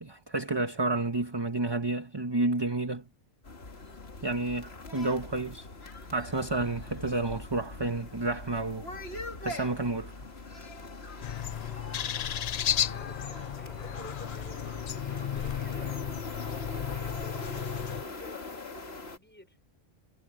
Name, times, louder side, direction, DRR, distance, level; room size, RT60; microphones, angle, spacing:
voice 1, 0.0-3.0 4.2-5.7 6.1-8.9 9.4-10.1, right 2 dB, 20° right, 1.2 m, -30 dB
sound 1, 3.4-19.2, left 2 dB, 55° left, 2.2 m, -42 dB
sound 2, 11.1-17.4, right 2 dB, 70° right, 5.0 m, -56 dB
sound 3, 11.2-18.0, left 10 dB, 85° left, 0.3 m, -34 dB
voice 2, 12.9-16.2 16.9-18.6 19.1-19.6, equal, 10° left, 4.9 m, -50 dB
omnidirectional pair, 1.3 m